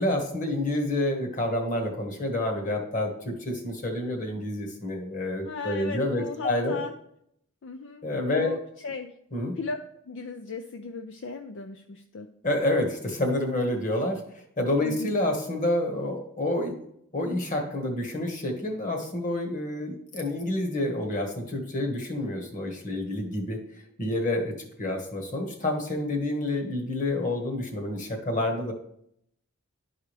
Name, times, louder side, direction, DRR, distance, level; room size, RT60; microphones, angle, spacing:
voice 1, 0.0-6.8 8.0-8.5 9.3-9.5 12.4-16.7 17.1-23.6 24.0-28.7, left 1 dB, 35° left, 3 dB, 1.4 m, -28 dB
voice 2, 5.4-6.9 7.6-8.0 8.3-9.2 9.5-9.8 10.0-12.3 14.8-15.2, left 4 dB, 60° left, 6 dB, 0.5 m, -37 dB
11.0 x 4.8 x 3.3 m, 0.71 s
head